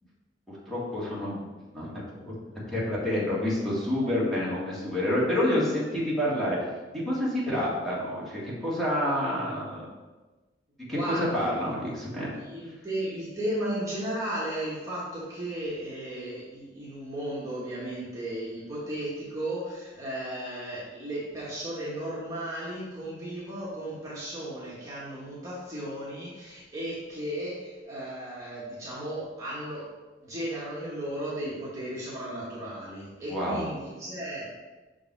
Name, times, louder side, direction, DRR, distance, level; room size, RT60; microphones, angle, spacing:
voice 1, 0.5-1.5 1.7-2.3 2.7-6.6 6.9-9.9 10.9-12.3 33.3-33.6, left 1 dB, ahead, -8 dB, 2.0 m, -28 dB
voice 2, 10.9-11.5 12.2-29.9 30.2-34.5, right 1 dB, 20° right, -8 dB, 1.6 m, -35 dB
6.2 x 5.2 x 4.7 m, 1.2 s
head